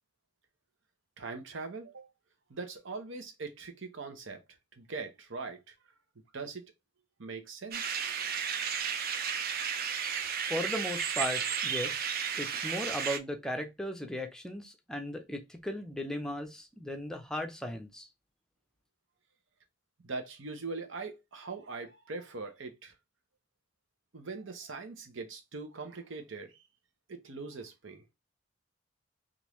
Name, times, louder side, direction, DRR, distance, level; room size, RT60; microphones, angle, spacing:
voice 1, 1.2-2.1 2.5-4.4 4.8-5.7 6.3-6.7 7.2-8.0 20.0-22.9 24.1-26.6 27.1-28.0, right 4 dB, 65° right, 0.9 m, -41 dB
sound 1, 7.7-13.2, right 7 dB, 45° right, 0.5 m, -33 dB
voice 2, 10.5-12.1 12.4-18.1, left 1 dB, 5° left, 0.6 m, -37 dB
3.6 x 2.6 x 3.0 m
head